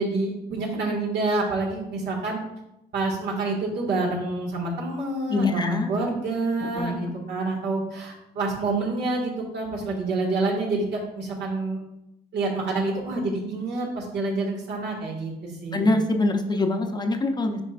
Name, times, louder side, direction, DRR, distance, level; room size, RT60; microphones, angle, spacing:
voice 1, 0.0-2.4 2.9-11.8 12.3-15.9, right 2 dB, 75° right, -2 dB, 1.8 m, -27 dB
voice 2, 5.3-5.9 6.8-7.0 15.7-17.6, left 2 dB, 25° left, 4 dB, 0.7 m, -24 dB
9.7 x 4.6 x 2.5 m, 0.87 s
cardioid pair, 110°, 18 cm